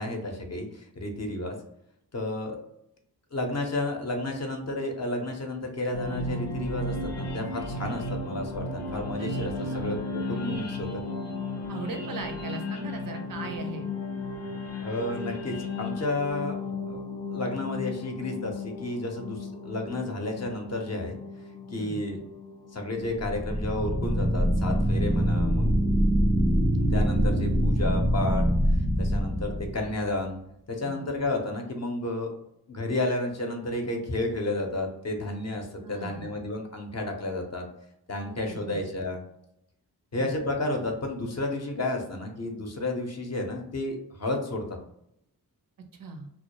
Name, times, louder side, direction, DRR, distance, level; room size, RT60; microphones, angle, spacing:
voice 1, 0.0-1.6 2.1-2.6 3.3-11.0 14.8-16.6 16.9-17.0 17.3-21.2 21.7-22.2 22.7-25.9 26.9-28.5 29.0-30.4 30.7-32.3 32.7-37.7 38.1-39.2 40.1-44.8, left 2 dB, 40° left, 3 dB, 0.6 m, -31 dB
sound 1, 5.9-23.1, left 2 dB, 90° left, 0.5 m, -35 dB
voice 2, 11.7-13.9 21.7-22.2 30.8-31.2 35.8-36.3 38.2-38.8 40.1-40.3 46.0-46.3, right 3 dB, 55° right, 4 dB, 0.5 m, -39 dB
sound 2, 23.1-30.1, equal, 10° right, 0.3 m, -24 dB
2.2 x 2.0 x 2.9 m, 0.78 s
cardioid pair, 45°, 39 cm